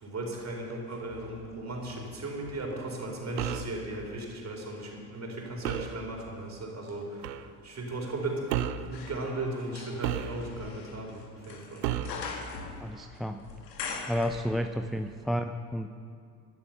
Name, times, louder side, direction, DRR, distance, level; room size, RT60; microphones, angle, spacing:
voice 1, 0.0-7.0 7.6-8.5 8.8-11.2 11.5-11.8, right 2 dB, 35° right, 0 dB, 4.2 m, -36 dB
sound 1, 0.9-3.1 3.6-14.9 15.2-15.3, left 5 dB, 85° left, 1.5 m, -45 dB
sound 2, 3.4-3.8 5.6-6.0 7.2-7.5 8.5-8.9 10.0-10.7 11.8-12.3, right 11 dB, 80° right, 0.8 m, -32 dB
voice 2, 12.8-13.4 14.1-15.9, equal, ahead, 7 dB, 0.5 m, -31 dB
16.5 x 11.0 x 5.8 m, 2.3 s
hypercardioid pair, 60°, 48 cm